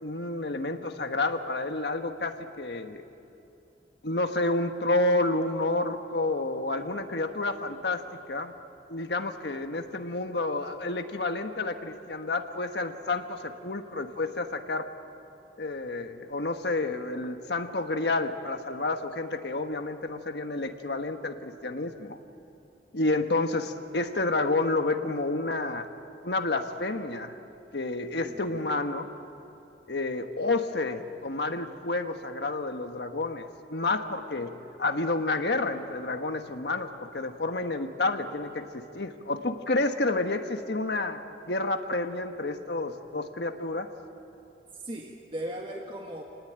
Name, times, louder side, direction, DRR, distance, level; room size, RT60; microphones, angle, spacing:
voice 1, 0.0-3.0 4.0-8.0 8.3-8.5 8.9-14.9 15.6-22.2 22.9-25.9 26.2-27.3 27.7-29.1 29.9-34.5 34.8-41.2 41.5-43.9, left 2 dB, 65° left, 6 dB, 1.3 m, -30 dB
voice 2, 28.2-28.7 44.7-46.2, right 1 dB, 30° right, 0 dB, 1.6 m, -38 dB
28.5 x 19.5 x 8.9 m, 2.8 s
head